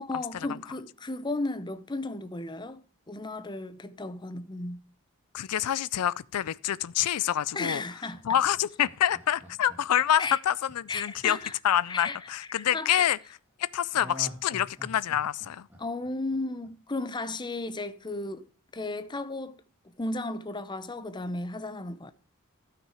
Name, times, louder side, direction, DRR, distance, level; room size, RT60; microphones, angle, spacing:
voice 1, 0.0-2.8 3.1-4.8 7.5-8.2 10.2-10.4 10.9-11.5 11.9-13.1 15.8-18.5 18.7-19.6 20.0-22.1, left 2 dB, 20° left, 0.7 m, -34 dB
voice 2, 5.3-7.8 8.2-11.4 11.6-13.2 13.7-15.7, left 10 dB, 85° left, 0.4 m, -27 dB
Laughter, 8.1-12.4 13.9-16.9 17.3-17.4, equal, 10° right, 1.9 m, -47 dB
12.5 x 6.0 x 4.8 m
head